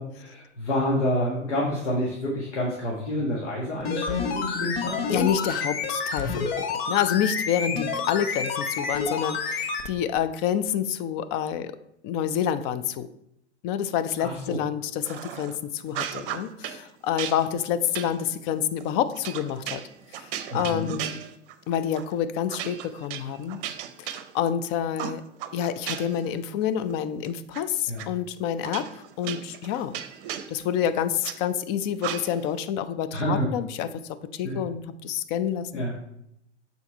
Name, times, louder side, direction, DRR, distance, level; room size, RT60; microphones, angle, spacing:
voice 1, 0.0-5.3 14.2-14.6 20.5-20.9 27.9-28.0 33.1-33.5 34.4-34.6 35.7-36.0, left 1 dB, 75° left, -3 dB, 1.5 m, -28 dB
sound 1, 3.8-9.9 10.2-10.3, left 4 dB, 55° left, 1.1 m, -29 dB
voice 2, 5.1-6.5 6.9-11.7 12.0-13.1 13.6-19.8 20.1-21.2 21.7-23.6 24.0-25.2 25.5-29.9 30.5-33.9 34.3-35.9, left 9 dB, 30° left, 12 dB, 0.4 m, -28 dB
sound 2, 15.0-15.6 15.9-16.8 17.2-21.6 21.9-22.1 22.5-24.6 25.0-26.3 26.6-27.6 28.0-28.1 28.6-31.4 32.0-32.5, right 10 dB, 50° right, 0.7 m, -36 dB
6.9 x 4.0 x 4.5 m, 0.77 s
figure-of-eight pair, 95°, 36 cm